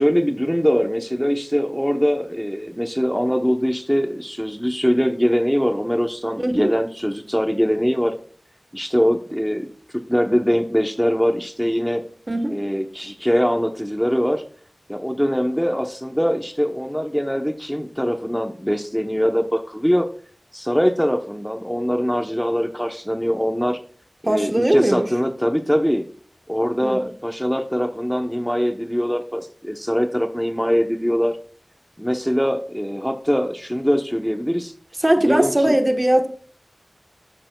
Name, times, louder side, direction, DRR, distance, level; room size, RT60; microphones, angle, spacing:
voice 1, 0.0-8.1 8.7-9.6 10.1-12.0 12.5-14.4 14.9-20.1 20.5-23.8 24.2-26.0 26.5-31.4 32.0-34.7 35.2-35.8, equal, 5° left, 0.8 m, -22 dB
voice 2, 6.4-6.7 12.3-12.5 24.2-25.1 26.8-27.0 35.0-36.3, right 1 dB, 35° right, 1.1 m, -19 dB
13.5 x 6.7 x 2.2 m
wide cardioid pair, 50°, 0 cm